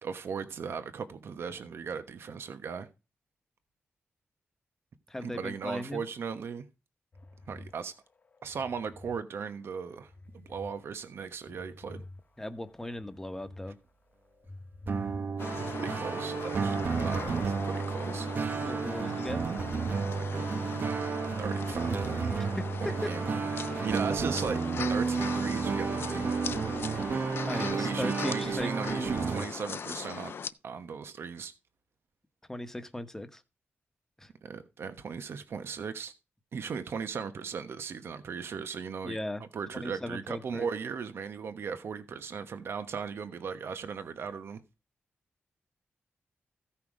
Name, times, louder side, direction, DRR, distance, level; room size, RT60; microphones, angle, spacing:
voice 1, 0.0-2.9 5.2-6.6 7.5-7.9 8.4-12.0 15.8-18.3 20.1-20.5 21.4-22.3 22.8-23.3 23.8-24.6 24.9-26.3 27.5-30.3 30.6-31.5 34.4-36.1 36.5-39.2 39.5-44.6, right 6 dB, 70° right, 1.1 m, -37 dB
voice 2, 5.1-6.0 12.4-13.8 18.6-19.4 22.6-23.1 23.5-23.9 27.4-29.1 32.5-33.4 34.2-34.3 39.0-39.4 39.7-40.7, left 1 dB, 10° left, 1.2 m, -38 dB
sound 1, 7.1-9.2 9.7-10.7 11.1-13.7 14.1-15.5, left 2 dB, 40° left, 1.1 m, -49 dB
sound 2, 14.9-29.5, right 5 dB, 55° right, 0.8 m, -31 dB
sound 3, 15.4-30.5, left 6 dB, 65° left, 0.7 m, -40 dB
15.5 x 5.8 x 4.9 m
wide cardioid pair, 140°, 4 cm